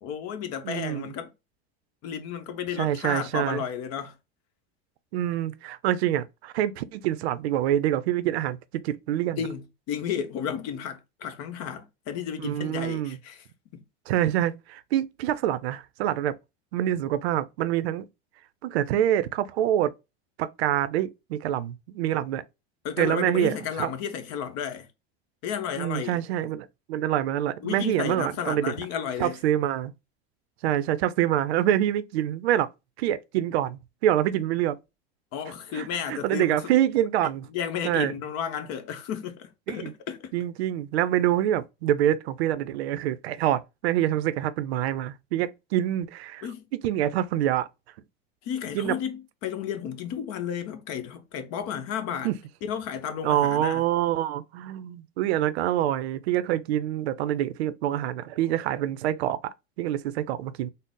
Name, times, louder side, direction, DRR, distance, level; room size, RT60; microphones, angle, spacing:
voice 1, 0.0-1.3 2.0-4.2 9.4-13.4 13.7-13.8 22.8-24.9 25.4-26.2 27.6-29.4 35.3-36.6 37.5-40.3 46.4-46.7 48.4-52.3 52.6-53.8, left 8 dB, 55° left, 0.8 m, -33 dB
voice 2, 0.6-1.1 2.8-3.6 5.1-9.4 12.4-13.2 14.1-16.3 16.7-18.1 18.6-19.9 20.4-22.4 23.0-23.9 25.8-28.7 29.2-29.9 30.6-32.7 33.0-34.8 35.7-37.5 37.8-38.1 39.7-39.9 40.3-46.5 46.8-47.7 48.7-48.9 52.2-52.4 53.2-59.4 59.8-60.7, right 12 dB, 85° right, 0.5 m, -26 dB
3.8 x 2.0 x 3.7 m
supercardioid pair, 105°, 31 cm